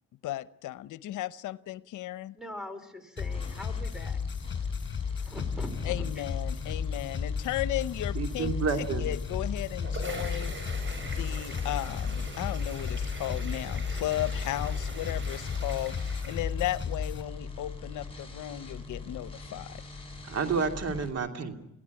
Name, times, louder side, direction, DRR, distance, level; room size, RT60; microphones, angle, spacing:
voice 1, 0.2-2.3 5.8-8.5 8.8-10.5 11.0-19.8, left 14 dB, 80° left, 16 dB, 0.8 m, -35 dB
voice 2, 2.3-4.2 5.1-6.2, left 1 dB, ahead, 10 dB, 4.9 m, -41 dB
sound 1, 3.2-17.2, left 6 dB, 40° left, 4.2 m, -34 dB
sound 2, 3.3-21.1, left 4 dB, 20° left, 7.7 m, -42 dB
voice 3, 8.1-9.1 20.2-21.6, right 5 dB, 55° right, 6 dB, 3.0 m, -30 dB
sound 3, 9.5-16.9, right 3 dB, 40° right, 7.1 m, -43 dB
25.0 x 16.0 x 9.7 m, 0.86 s
cardioid pair, 90°, 30 cm